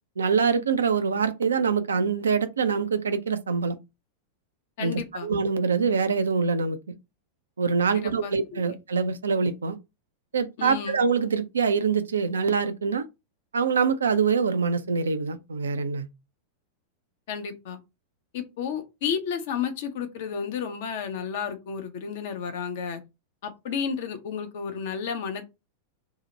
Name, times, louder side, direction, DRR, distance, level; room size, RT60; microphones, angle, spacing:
voice 1, 0.2-3.8 4.8-6.8 7.6-9.8 10.3-13.1 13.5-16.1, right 5 dB, 75° right, 0.4 m, -24 dB
voice 2, 4.8-5.3 7.9-8.7 10.6-11.0 17.3-17.8 18.3-23.0 23.4-25.5, left 7 dB, 55° left, 0.6 m, -32 dB
2.7 x 2.1 x 3.9 m
figure-of-eight pair, 90°, 0 cm